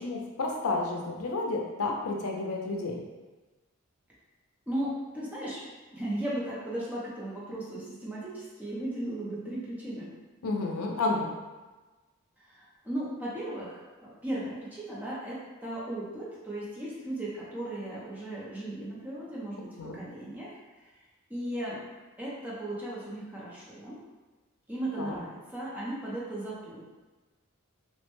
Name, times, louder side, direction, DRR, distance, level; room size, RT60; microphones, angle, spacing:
voice 1, 0.0-3.0 10.4-11.3 19.8-20.0 25.0-25.2, left 3 dB, 85° left, 0 dB, 0.5 m, -31 dB
voice 2, 4.7-5.6 5.9-10.1 12.4-20.5 21.3-21.9 22.2-24.0 24.7-26.9, right 1 dB, 10° right, -8 dB, 0.5 m, -36 dB
3.1 x 2.1 x 3.0 m, 1.2 s
head